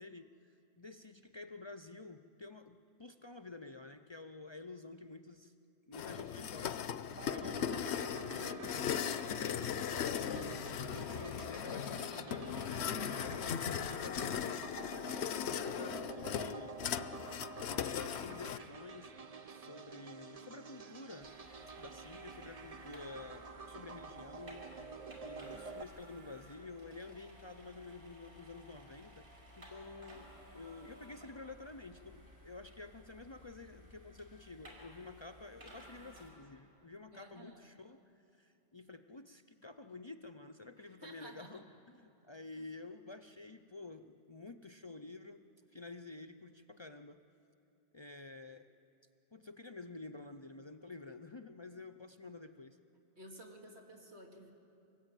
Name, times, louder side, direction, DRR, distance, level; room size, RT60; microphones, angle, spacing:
voice 1, 0.0-5.5 5.9-6.8 7.2-8.6 8.9-14.4 14.8-16.8 17.8-19.1 19.5-21.3 21.8-24.7 25.2-38.0 38.3-47.2 47.9-48.7 49.3-52.8, left 3 dB, 35° left, 9 dB, 0.5 m, -50 dB
sound 1, 5.9-18.6, left 8 dB, 85° left, 1.0 m, -38 dB
sound 2, 7.2-25.8, right 5 dB, 40° right, 0.9 m, -49 dB
voice 2, 8.3-9.1 37.1-37.7 40.8-41.6 42.5-42.7 53.2-54.5, right 1 dB, 85° right, 1 dB, 3.1 m, -54 dB
sound 3, 21.2-36.3, equal, 65° right, 5.1 m, -57 dB
24.0 x 18.5 x 8.9 m, 2.8 s
omnidirectional pair, 1.1 m